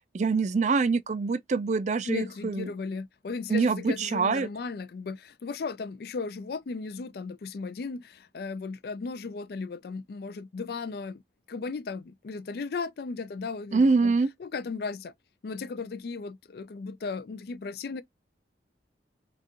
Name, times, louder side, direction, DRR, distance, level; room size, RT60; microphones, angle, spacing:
voice 1, 0.1-2.7 3.5-4.5 13.7-14.3, right 4 dB, 40° right, 0.3 m, -25 dB
voice 2, 2.0-11.2 11.5-14.1 14.4-15.1 15.4-18.0, left 4 dB, 55° left, 0.4 m, -36 dB
4.7 x 2.4 x 2.8 m
head